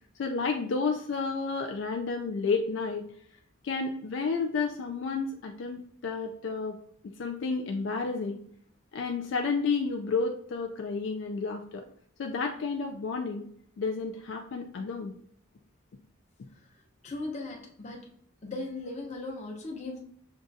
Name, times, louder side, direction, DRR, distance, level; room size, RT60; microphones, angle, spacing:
voice 1, 0.2-3.1 3.6-6.8 7.2-8.4 8.9-11.9 12.2-13.4 13.8-15.1, left 4 dB, 65° left, 4 dB, 0.3 m, -31 dB
voice 2, 17.0-18.1 18.4-20.0, left 2 dB, 35° left, -1 dB, 0.7 m, -37 dB
6.3 x 2.4 x 2.6 m, 0.65 s
head